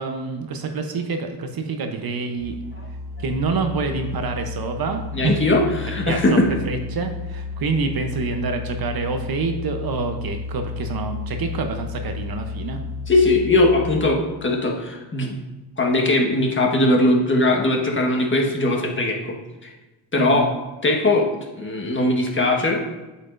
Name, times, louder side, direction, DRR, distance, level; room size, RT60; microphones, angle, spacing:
voice 1, 0.0-2.5 3.2-5.4 6.1-6.4 6.6-12.8 20.2-20.5, right 4 dB, 50° right, 5 dB, 0.9 m, -27 dB
Musical instrument, 2.4-14.4, left 4 dB, 70° right, 2.0 m, -32 dB
voice 2, 5.1-6.5 13.1-15.4 15.8-19.4 19.6-19.7 20.1-20.5 20.8-21.3 21.5-22.8, left 2 dB, 25° left, 0 dB, 1.4 m, -20 dB
8.1 x 7.3 x 2.6 m, 1.1 s
cardioid pair, 105°, 48 cm